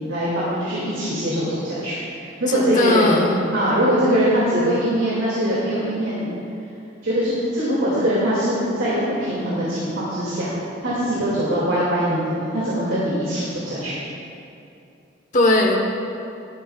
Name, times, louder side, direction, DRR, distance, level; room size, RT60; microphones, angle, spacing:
voice 1, 0.1-3.2 3.5-6.3 7.0-10.5 10.8-14.1, equal, 85° right, -8 dB, 2.4 m, -22 dB
voice 2, 2.5-3.4 15.3-15.8, left 2 dB, 40° left, 0 dB, 1.1 m, -18 dB
13.0 x 11.5 x 2.4 m, 2.6 s
head